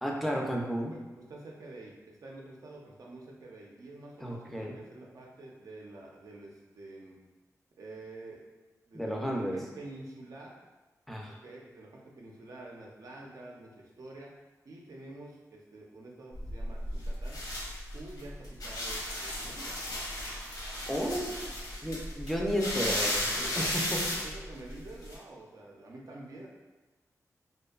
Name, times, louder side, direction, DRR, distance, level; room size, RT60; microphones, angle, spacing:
voice 1, 0.0-0.9 4.2-4.8 8.9-9.6 11.1-11.3 20.9-21.5 21.8-23.3 23.6-24.0, equal, ahead, -1 dB, 0.4 m, -32 dB
voice 2, 0.9-7.2 7.8-8.4 8.9-10.5 11.3-14.3 14.6-17.4 17.9-19.8 23.3-26.5, right 2 dB, 65° right, -2 dB, 0.5 m, -48 dB
sound 1, 16.3-25.1, left 1 dB, 85° left, 0.7 m, -34 dB
2.5 x 2.2 x 2.3 m, 1.2 s
wide cardioid pair, 100°, 6 cm